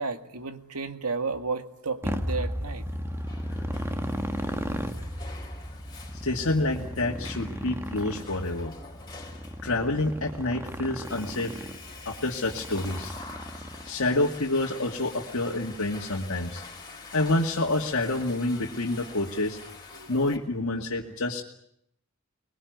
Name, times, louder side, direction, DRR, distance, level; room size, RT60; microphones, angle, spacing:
voice 1, 0.0-2.8 19.9-20.1, right 4 dB, 85° right, 8 dB, 2.1 m, -32 dB
Motorcycle, 2.0-14.1, equal, 10° right, 1.4 m, -35 dB
Water / Toilet flush, 2.9-20.4, left 4 dB, 20° left, 4.6 m, -46 dB
voice 2, 6.2-8.7 9.6-11.7 12.1-13.1 13.8-16.6 17.1-19.6 20.1-21.4, left 2 dB, 65° left, -3 dB, 2.3 m, -28 dB
25.0 x 21.0 x 9.5 m, 0.74 s
head